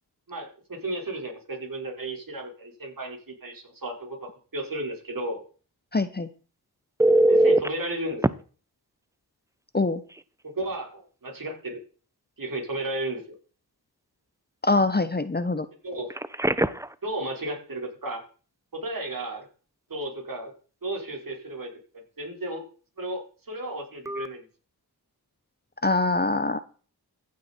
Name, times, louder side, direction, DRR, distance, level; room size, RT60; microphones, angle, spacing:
voice 1, 0.3-5.4 7.3-8.2 10.4-11.8 12.4-13.2 15.8-16.1 17.0-18.2 18.7-19.5 19.9-20.5 20.8-21.7 22.2-22.6 23.0-24.4, right 1 dB, 55° right, 1 dB, 4.9 m, -33 dB
voice 2, 5.9-6.3 9.7-10.0 14.6-15.7 25.8-26.6, left 2 dB, 25° left, 13 dB, 0.9 m, -24 dB
Telephone, 7.0-7.7 8.2-8.3 10.1-10.2 10.6-10.8 16.1-16.9 24.1-24.3, right 1 dB, 10° right, 0.6 m, -21 dB
15.0 x 7.5 x 4.4 m, 0.39 s
cardioid pair, 55°, 39 cm